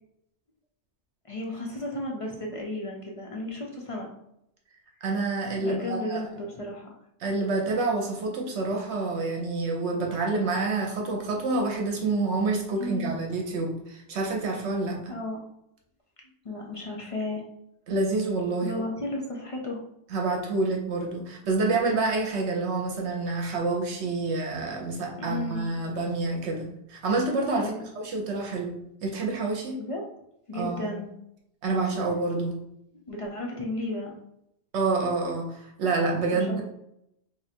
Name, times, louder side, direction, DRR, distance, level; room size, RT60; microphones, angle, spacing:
voice 1, 1.3-4.1 5.6-6.9 12.8-13.1 15.1-15.4 16.4-17.4 18.6-19.8 25.2-25.7 27.5-27.9 29.8-30.0 30.5-31.1 33.1-34.1, left 2 dB, 50° left, -1 dB, 0.4 m, -34 dB
voice 2, 5.0-6.3 7.2-15.1 17.9-18.8 20.1-29.8 30.5-30.9 31.6-32.6 34.7-36.6, right 3 dB, 70° right, 1 dB, 1.0 m, -28 dB
2.7 x 2.4 x 4.2 m, 0.78 s
omnidirectional pair, 1.2 m